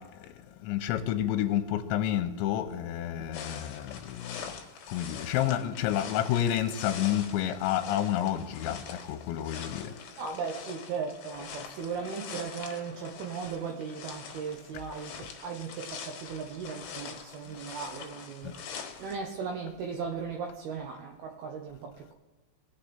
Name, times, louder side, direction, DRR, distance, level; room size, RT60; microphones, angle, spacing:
voice 1, 0.7-4.2 4.9-8.8 9.1-9.9, left 11 dB, 85° left, 3.0 m, -29 dB
sound 1, 3.3-19.2, left 7 dB, 65° left, 2.9 m, -44 dB
voice 2, 10.2-18.6 19.0-22.1, right 6 dB, 75° right, 2.5 m, -37 dB
20.0 x 6.8 x 4.3 m
omnidirectional pair, 5.3 m